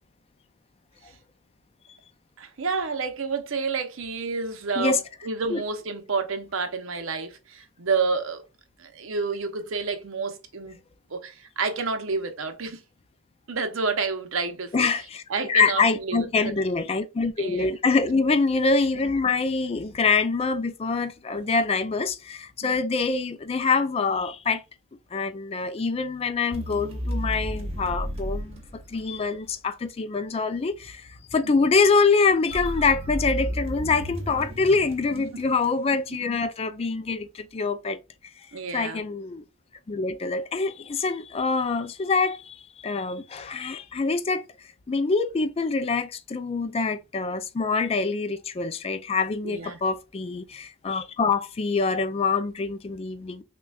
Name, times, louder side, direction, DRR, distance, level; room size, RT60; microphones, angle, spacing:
voice 1, 2.4-8.4 8.8-10.8 11.1-12.8 13.5-14.9 15.3-16.5 17.4-17.7 22.6-22.8 31.4-31.5 35.1-35.2 38.5-39.0 49.4-49.8, right 4 dB, 65° right, 0.7 m, -29 dB
voice 2, 14.7-15.2 15.5-24.6 25.1-38.0 38.7-39.5 39.9-44.5 44.9-53.4, left 4 dB, 30° left, 0.3 m, -25 dB
sound 1, 26.5-29.5 32.5-35.9, equal, 30° right, 0.8 m, -33 dB
5.9 x 2.3 x 2.3 m
head